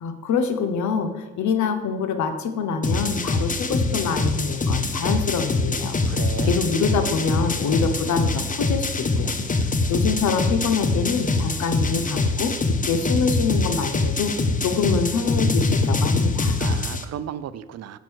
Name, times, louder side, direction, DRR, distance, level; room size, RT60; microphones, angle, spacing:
voice 1, 0.0-5.9 6.5-9.3 9.9-12.5 12.8-14.3 14.6-16.6, left 5 dB, 70° left, 8 dB, 0.9 m, -25 dB
sound 1, 2.8-17.0, left 2 dB, 25° left, 0.8 m, -24 dB
voice 2, 6.0-6.7 16.6-18.0, right 10 dB, 55° right, 14 dB, 0.6 m, -34 dB
7.6 x 5.3 x 6.3 m, 1.1 s
cardioid pair, 90°, 30 cm